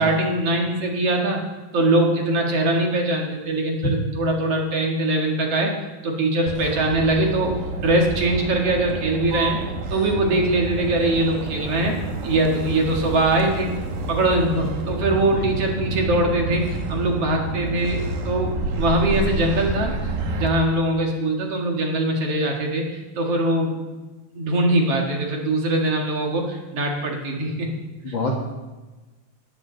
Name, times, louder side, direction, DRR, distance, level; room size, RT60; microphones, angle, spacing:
voice 1, 0.0-1.4 1.7-5.7 6.0-9.6 9.9-12.0 12.2-13.8 14.1-19.9 20.4-23.8 24.3-27.7 28.1-28.2, right 1 dB, 55° right, 1 dB, 2.8 m, -22 dB
Motor vehicle (road), 6.5-20.5, right 2 dB, 85° right, 2.9 m, -29 dB
voice 2, 15.1-15.5 28.0-28.4, left 2 dB, 45° left, -1 dB, 1.9 m, -27 dB
18.5 x 13.5 x 3.9 m, 1.2 s
omnidirectional pair, 3.5 m